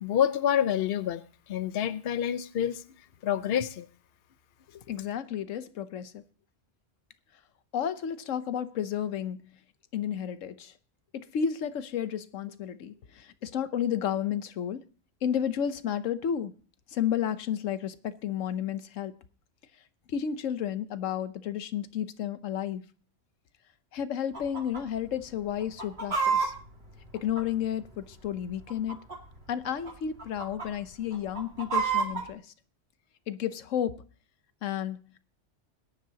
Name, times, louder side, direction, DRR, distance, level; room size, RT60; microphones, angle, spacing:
voice 1, 0.0-1.2 1.5-2.8 3.2-3.9, left 9 dB, 55° left, 0.9 m, -27 dB
voice 2, 4.9-6.2 7.7-9.4 9.9-10.7 11.1-14.8 15.2-16.5 16.9-19.1 20.1-22.8 23.9-26.5 27.1-29.0 29.5-32.5 33.3-34.0 34.6-35.0, left 9 dB, 90° left, 1.2 m, -32 dB
Chicken rooster, 24.3-24.8 25.1-25.2 25.6-27.9 28.6-29.4 29.7-29.9 30.2-30.7 31.1-32.3, right 5 dB, 55° right, 2.3 m, -29 dB
21.0 x 10.5 x 2.8 m
omnidirectional pair, 1.3 m